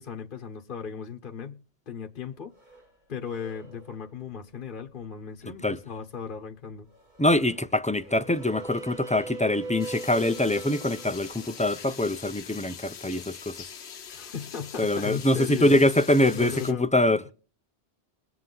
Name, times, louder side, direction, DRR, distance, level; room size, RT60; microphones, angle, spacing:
voice 1, 0.0-2.5 3.1-6.9 14.1-15.8 16.1-16.9, left 7 dB, 50° left, 1.1 m, -36 dB
sound 1, 2.5-2.9 3.2-4.2 5.0-5.1 6.9-12.8 14.7-16.0, right 3 dB, 45° right, 2.0 m, -43 dB
voice 2, 7.2-13.6 14.8-17.3, left 1 dB, 10° left, 0.3 m, -24 dB
sound 2, 9.8-16.7, left 7 dB, 75° left, 1.2 m, -43 dB
22.0 x 7.7 x 3.8 m
omnidirectional pair, 1.1 m